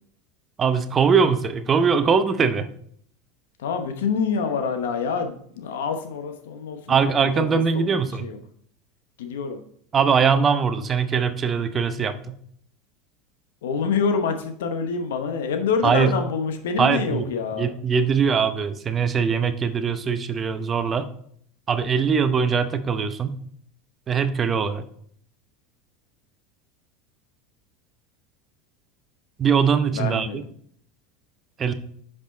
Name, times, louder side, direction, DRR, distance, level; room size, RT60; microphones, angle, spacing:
voice 1, 0.6-2.7 6.9-8.3 9.9-12.2 15.8-16.2 16.8-17.3 17.6-21.1 21.7-23.4 24.1-24.8 29.4-30.4 31.6-31.7, right 6 dB, 30° right, 10 dB, 0.7 m, -21 dB
voice 2, 3.6-7.6 8.2-8.4 9.2-9.6 13.6-17.7 29.9-30.4, left 5 dB, 80° left, 6 dB, 0.9 m, -26 dB
6.0 x 5.2 x 4.0 m, 0.63 s
hypercardioid pair, 90°, 0 cm